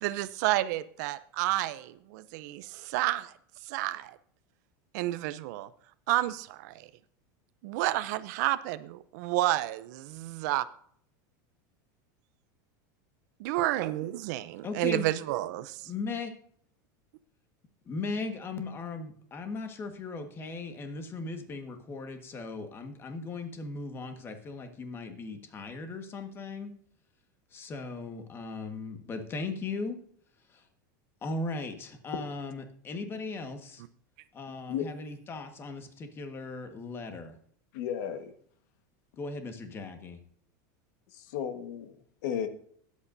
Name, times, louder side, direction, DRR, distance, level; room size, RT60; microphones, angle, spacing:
voice 1, 0.0-3.3 3.6-4.2 4.9-5.7 6.1-6.9 7.6-10.7 13.4-15.9, right 16 dB, 65° right, 15 dB, 0.6 m, -30 dB
voice 2, 14.6-15.0 15.8-16.3 17.8-26.7 27.5-30.0 30.5-30.6 31.2-33.8 34.3-37.4 39.2-40.2, left 3 dB, 25° left, 6 dB, 1.5 m, -38 dB
voice 3, 34.5-34.9 37.7-38.3 41.1-42.0 42.2-42.5, left 9 dB, 70° left, 9 dB, 1.5 m, -34 dB
20.0 x 8.4 x 2.7 m, 0.62 s
supercardioid pair, 150°, 10 cm